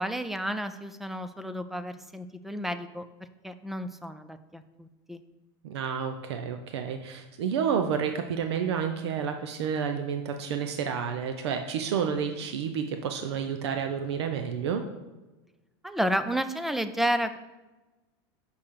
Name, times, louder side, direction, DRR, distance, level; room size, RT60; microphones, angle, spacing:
voice 1, 0.0-3.1 3.4-5.2 15.8-17.4, equal, ahead, 11 dB, 0.4 m, -31 dB
voice 2, 5.6-14.8, right 7 dB, 90° right, 6 dB, 0.8 m, -30 dB
6.0 x 5.8 x 6.5 m, 1.1 s
supercardioid pair, 145°, 14 cm